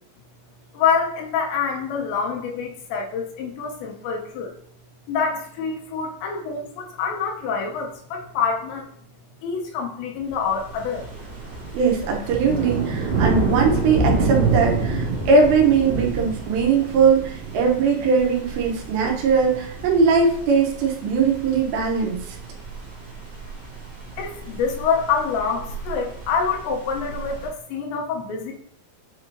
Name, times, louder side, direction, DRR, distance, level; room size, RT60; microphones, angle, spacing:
voice 1, 0.7-4.5 5.1-8.9 9.4-11.1 24.2-28.5, left 6 dB, 80° left, 1 dB, 3.0 m, -26 dB
sound 1, 10.3-27.5, right 3 dB, 40° right, 2.4 m, -28 dB
voice 2, 11.7-22.4, right 5 dB, 75° right, 0 dB, 3.0 m, -20 dB
8.9 x 4.8 x 2.7 m, 0.64 s
omnidirectional pair, 5.3 m